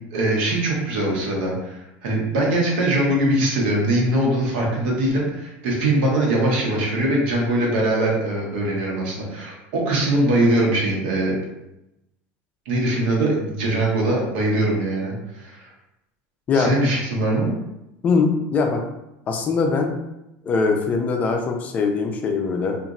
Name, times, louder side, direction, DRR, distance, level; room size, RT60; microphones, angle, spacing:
voice 1, 0.1-11.4 12.7-15.7 16.5-17.5, right 1 dB, 85° right, -2 dB, 1.0 m, -22 dB
voice 2, 18.0-18.8 19.3-19.9 20.4-22.8, left 4 dB, 25° left, 3 dB, 0.4 m, -21 dB
2.9 x 2.5 x 2.5 m, 0.90 s
cardioid pair, 155°, 6 cm